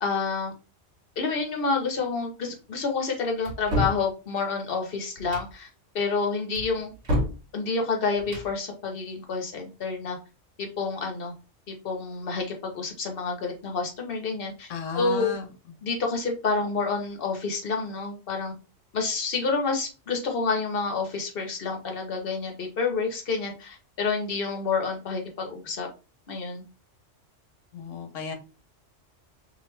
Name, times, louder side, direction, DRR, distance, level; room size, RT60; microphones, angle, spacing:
voice 1, 0.0-0.5 1.2-5.7 5.9-6.9 7.5-10.2 10.6-11.3 11.7-14.7 14.9-15.3 15.8-18.5 18.9-25.9 26.3-26.6, left 4 dB, 50° left, 3 dB, 1.0 m, -28 dB
sound 1, 3.4-4.0 5.2-5.5 6.5-7.4 8.2-8.5, left 1 dB, 55° right, 1.6 m, -28 dB
voice 2, 14.7-15.7 27.7-28.3, left 5 dB, 80° left, 4 dB, 1.1 m, -34 dB
2.9 x 2.6 x 3.2 m, 0.33 s
omnidirectional pair, 1.3 m